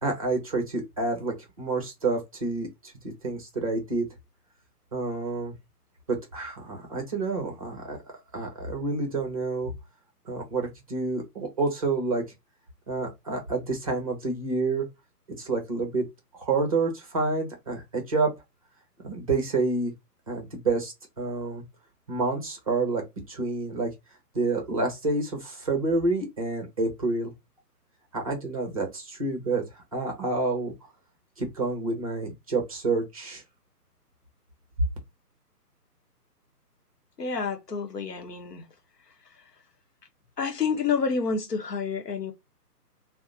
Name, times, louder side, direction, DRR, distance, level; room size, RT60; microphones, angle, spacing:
voice 1, 0.0-2.9 3.2-4.1 4.9-5.5 6.1-8.0 8.3-9.7 10.3-12.2 12.9-14.9 15.4-16.0 16.4-18.3 19.0-19.9 20.3-21.6 22.1-23.9 24.3-27.3 28.1-30.7 31.4-33.4, right 3 dB, 25° right, 0.7 m, -28 dB
voice 2, 37.2-38.7 39.3-39.5 40.4-42.3, left 5 dB, 75° left, 1.0 m, -29 dB
2.8 x 2.1 x 3.7 m
figure-of-eight pair, 140°, 48 cm